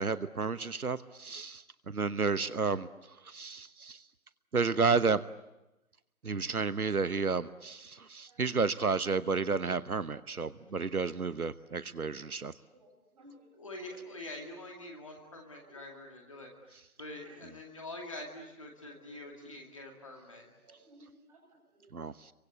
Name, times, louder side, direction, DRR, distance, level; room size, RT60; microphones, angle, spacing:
voice 1, 0.0-2.9 3.2-4.0 4.5-5.2 6.2-12.5 21.9-22.3, right 4 dB, 80° right, 14 dB, 1.1 m, -31 dB
voice 2, 8.3-9.0 11.5-11.6 12.7-14.0 15.1-15.9 17.2-17.4 18.2-18.3 18.9-19.5 20.1-20.2 20.5-22.0, right 1 dB, 25° right, 1 dB, 6.4 m, -60 dB
voice 3, 13.6-16.5 17.0-20.5, left 1 dB, 20° left, 1 dB, 2.3 m, -45 dB
29.0 x 24.0 x 8.3 m, 0.95 s
figure-of-eight pair, 170°, 43 cm